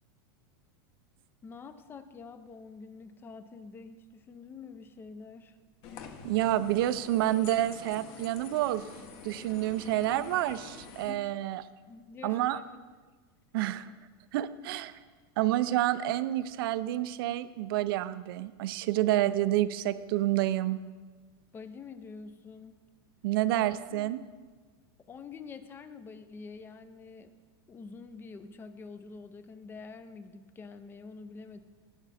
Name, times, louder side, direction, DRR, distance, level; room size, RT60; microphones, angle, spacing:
voice 1, 1.4-5.6 11.0-11.3 11.9-12.6 21.5-22.8 23.5-24.2 25.1-27.3 27.7-31.6, left 4 dB, 15° left, 11 dB, 0.5 m, -47 dB
sound 1, 5.8-11.1, left 6 dB, 45° left, 1.1 m, -47 dB
voice 2, 6.2-8.9 9.2-11.6 12.2-12.6 13.5-13.9 14.3-15.0 15.4-20.8 23.2-24.2, right 14 dB, 70° right, 14 dB, 0.5 m, -29 dB
18.0 x 6.1 x 4.2 m, 1.4 s
supercardioid pair, 150°, 13 cm